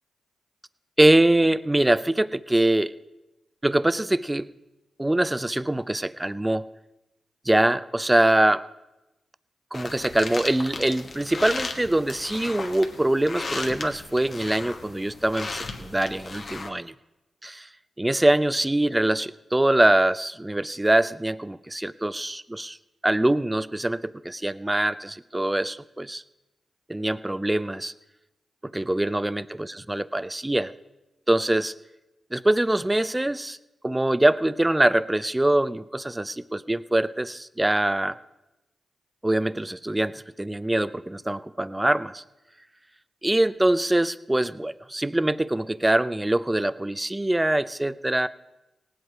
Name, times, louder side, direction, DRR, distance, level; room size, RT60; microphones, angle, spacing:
voice 1, 1.0-2.9 3.6-4.5 5.0-6.6 7.5-8.7 9.7-16.9 17.4-17.7 18.0-22.8 23.0-26.2 26.9-27.9 28.6-30.7 31.3-31.7 32.3-33.6 33.8-38.2 39.2-42.2 43.2-48.3, right 1 dB, 15° right, 16 dB, 0.5 m, -23 dB
sound 1, 9.7-16.7, left 3 dB, 55° left, 1.3 m, -36 dB
18.0 x 8.0 x 4.7 m, 0.98 s
supercardioid pair, 40°, 0 cm